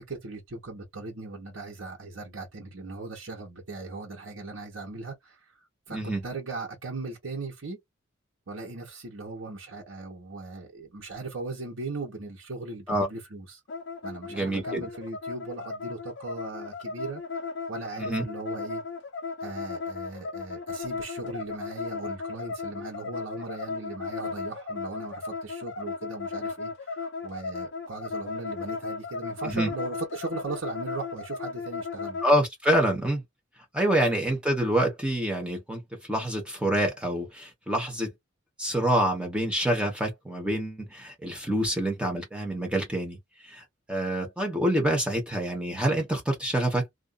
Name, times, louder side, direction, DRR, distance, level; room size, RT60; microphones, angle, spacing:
voice 1, 0.0-5.4 5.9-6.0 6.2-7.8 8.5-13.6 14.0-17.2 17.7-18.8 19.4-32.2, right 3 dB, 70° right, 1.1 m, -38 dB
voice 2, 5.9-6.2 12.9-13.1 14.3-14.8 18.0-18.2 29.4-29.7 32.2-33.2 33.7-35.8 36.1-38.1 38.6-43.2 43.4-46.9, right 1 dB, 5° right, 1.0 m, -26 dB
sound 1, 13.7-32.3, left 4 dB, 60° left, 0.6 m, -35 dB
2.5 x 2.5 x 2.3 m
head